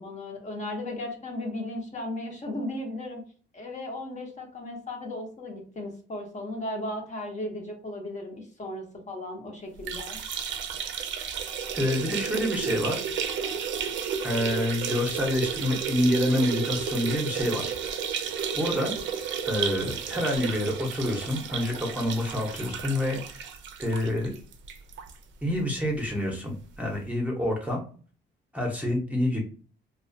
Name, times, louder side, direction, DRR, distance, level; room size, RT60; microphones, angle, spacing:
voice 1, 0.0-3.2 3.5-10.2, left 1 dB, 35° left, 1 dB, 0.7 m, -36 dB
sound 1, 9.8-25.2 25.5-25.6 25.9-26.0 27.0-27.1, right 7 dB, 70° right, 0.4 m, -32 dB
voice 2, 11.7-13.0 14.2-17.7 18.5-18.9 19.5-23.5 23.8-24.3 25.4-27.8 28.5-29.5, left 1 dB, 5° right, 0 dB, 0.7 m, -27 dB
2.3 x 2.2 x 2.5 m, 0.41 s
cardioid pair, 90°, 20 cm